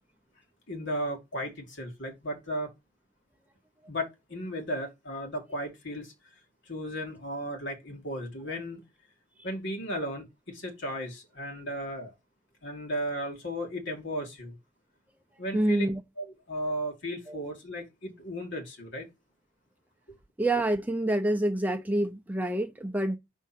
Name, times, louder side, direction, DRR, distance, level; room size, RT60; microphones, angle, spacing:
voice 1, 0.7-2.7 3.9-6.1 6.7-8.8 9.4-12.1 12.6-14.6 15.4-15.9 16.2-19.1, equal, 60° left, 2.1 m, -35 dB
voice 2, 15.5-16.0 17.3-17.4 20.4-23.2, right 1 dB, 10° right, 0.5 m, -27 dB
5.5 x 3.6 x 5.8 m
head